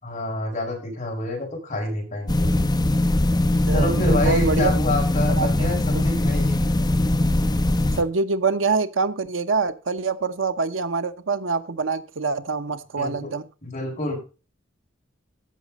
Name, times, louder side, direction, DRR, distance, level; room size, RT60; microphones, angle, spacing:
voice 1, 0.0-2.5 3.7-6.5 13.0-13.3 13.6-14.2, left 1 dB, 40° left, -1 dB, 6.0 m, -27 dB
sound 1, 2.3-8.0, left 1 dB, 20° left, 1.1 m, -21 dB
voice 2, 3.7-4.7 5.4-5.7 5.9-6.1 8.0-13.5, right 4 dB, 75° right, 12 dB, 0.9 m, -25 dB
15.0 x 6.2 x 5.2 m, 0.33 s
head